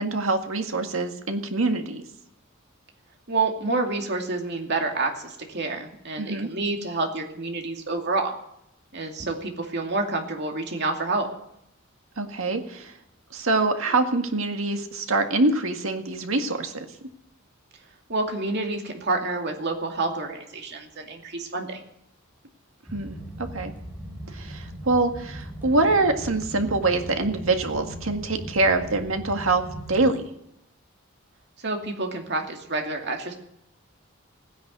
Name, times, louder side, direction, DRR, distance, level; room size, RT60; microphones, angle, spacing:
voice 1, 0.0-2.1 6.2-6.5 12.2-12.9 13.3-16.9 22.9-23.7 24.3-29.6 29.9-30.2, right 2 dB, 80° right, 5 dB, 1.9 m, -24 dB
voice 2, 3.3-8.3 8.9-11.3 18.1-21.8 31.6-33.3, right 3 dB, 55° right, 2 dB, 2.5 m, -28 dB
sound 1, 22.9-30.1, equal, 10° right, 3.3 m, -38 dB
16.5 x 10.5 x 8.1 m, 0.78 s
head